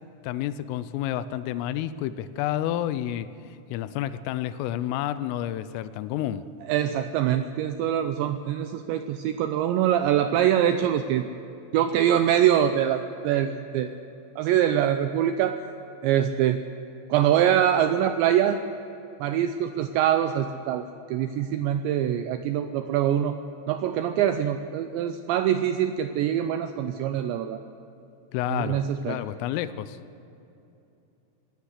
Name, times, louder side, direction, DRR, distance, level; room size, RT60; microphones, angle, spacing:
voice 1, 0.2-6.5 28.3-30.0, left 12 dB, 80° left, 13 dB, 3.3 m, -30 dB
voice 2, 6.7-11.3 11.7-14.0 14.4-15.6 16.0-16.6 17.1-18.6 19.2-23.4 23.7-27.6 28.5-29.2, right 10 dB, 90° right, 9 dB, 2.5 m, -24 dB
24.5 x 18.0 x 6.6 m, 2.8 s
omnidirectional pair, 6.0 m